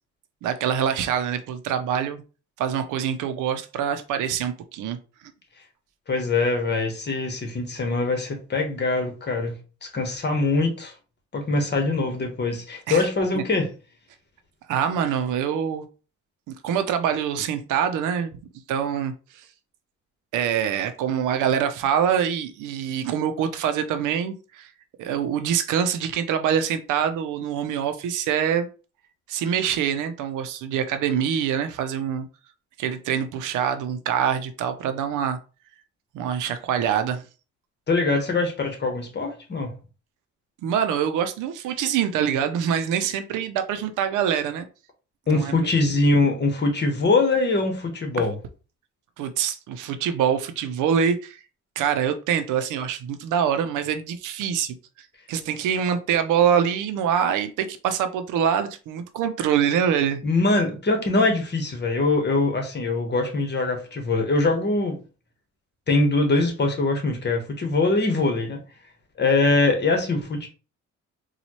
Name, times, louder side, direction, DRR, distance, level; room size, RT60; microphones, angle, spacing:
voice 1, 0.4-2.2 2.6-5.0 12.9-13.1 13.3-13.4 14.7-15.8 16.5-18.4 18.7-19.4 20.3-24.7 25.0-28.7 29.3-32.3 32.8-35.4 36.1-37.2 40.6-44.7 45.3-45.7 49.2-51.4 51.8-54.8 55.3-60.2, right 8 dB, 90° right, 0.6 m, -25 dB
voice 2, 6.1-9.5 9.8-10.9 11.3-13.7 37.9-39.7 45.3-48.3 60.2-65.0 65.9-68.6 69.2-70.5, left 3 dB, 35° left, 1.2 m, -23 dB
4.1 x 2.3 x 3.0 m
cardioid pair, 90°, 30 cm